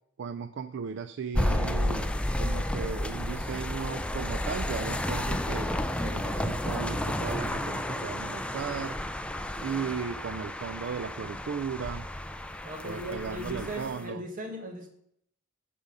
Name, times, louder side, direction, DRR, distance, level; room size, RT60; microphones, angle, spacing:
voice 1, 0.2-9.0 9.6-12.1 12.8-14.2, right 6 dB, 55° right, 14 dB, 0.4 m, -36 dB
sound 1, 1.3-14.1, left 1 dB, 5° left, 0.4 m, -32 dB
voice 2, 12.6-14.9, equal, 40° right, 3 dB, 1.9 m, -38 dB
13.0 x 5.2 x 5.4 m, 0.72 s
head